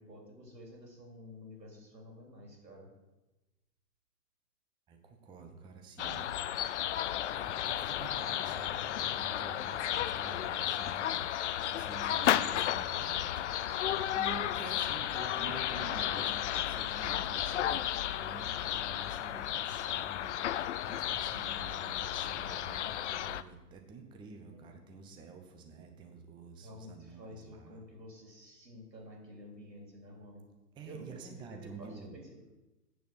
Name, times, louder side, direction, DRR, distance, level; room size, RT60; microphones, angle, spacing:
voice 1, 0.0-2.9 24.5-24.6 26.6-30.4 30.8-32.4, left 1 dB, 85° right, 0 dB, 3.9 m, -51 dB
voice 2, 4.9-6.3 7.2-13.4 14.1-17.8 18.1-27.8 30.7-32.2, right 5 dB, 10° right, 4 dB, 0.7 m, -49 dB
sound 1, 6.0-23.4, left 11 dB, 50° left, 0.4 m, -33 dB
8.5 x 6.8 x 6.4 m, 1.0 s
figure-of-eight pair, 120°, 49 cm